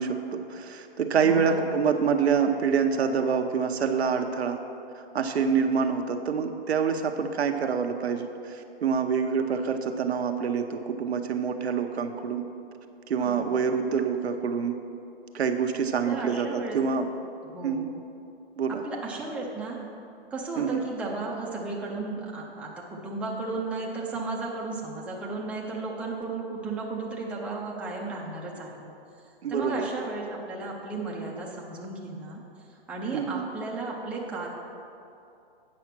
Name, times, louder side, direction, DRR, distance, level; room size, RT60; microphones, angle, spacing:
voice 1, 0.0-4.6 5.1-12.4 13.1-14.7 15.3-17.1 17.6-17.9 18.6-18.8 20.6-20.8 29.4-29.9 33.1-33.5, right 6 dB, 80° right, 5 dB, 0.9 m, -26 dB
voice 2, 1.2-1.6 13.2-13.5 16.1-16.8 17.4-17.8 18.8-19.8 20.3-28.9 29.5-32.4 32.7-34.5, right 3 dB, 5° right, -4 dB, 0.7 m, -34 dB
8.6 x 5.7 x 5.9 m, 2.7 s
hypercardioid pair, 140°, 32 cm